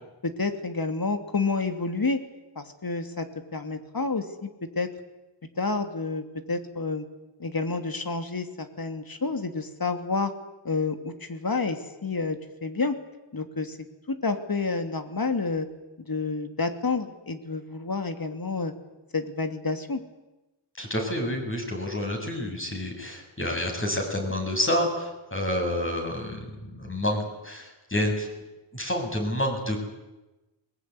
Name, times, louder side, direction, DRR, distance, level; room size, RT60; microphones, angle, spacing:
voice 1, 0.2-2.2 2.6-3.3 3.5-4.5 4.7-4.9 5.6-7.0 7.4-10.3 10.6-13.0 13.3-13.8 14.1-15.7 16.1-18.7 19.1-20.0, left 3 dB, 45° left, 7 dB, 2.7 m, -29 dB
voice 2, 20.8-28.3 28.7-29.9, left 1 dB, 25° left, 2 dB, 7.6 m, -29 dB
22.0 x 21.0 x 9.7 m, 1.0 s
wide cardioid pair, 70°, 48 cm